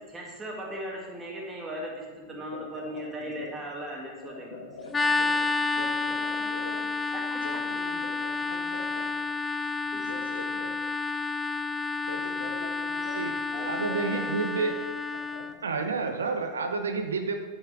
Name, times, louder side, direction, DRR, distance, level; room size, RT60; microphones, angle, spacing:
voice 1, 0.1-4.6 6.1-6.4 7.1-7.4 9.9-10.1 13.5-14.2, equal, 15° right, -2 dB, 2.1 m, -38 dB
voice 2, 2.3-3.7 4.2-5.3 5.7-6.9 7.4-9.1 9.4-10.7 11.1-11.5 12.1-13.2 13.5-14.7 15.3-15.4, left 3 dB, 70° left, 2 dB, 1.4 m, -43 dB
sound 1, 4.9-15.5, left 3 dB, 15° left, 0.4 m, -30 dB
voice 3, 13.6-14.8 15.6-17.4, right 4 dB, 70° right, 6 dB, 0.7 m, -29 dB
9.0 x 7.7 x 3.6 m, 1.3 s
figure-of-eight pair, 90°, 0 cm